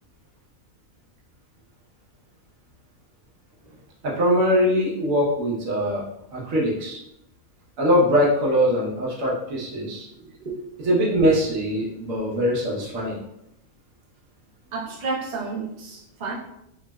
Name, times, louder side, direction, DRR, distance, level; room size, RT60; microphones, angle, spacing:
voice 1, 4.0-6.0 6.3-7.0 7.8-10.1 10.8-13.2, equal, 80° right, -3 dB, 1.3 m, -22 dB
voice 2, 10.2-10.5 14.7-16.3, right 4 dB, 45° right, -4 dB, 0.7 m, -31 dB
4.6 x 2.0 x 2.2 m, 0.80 s
omnidirectional pair, 1.4 m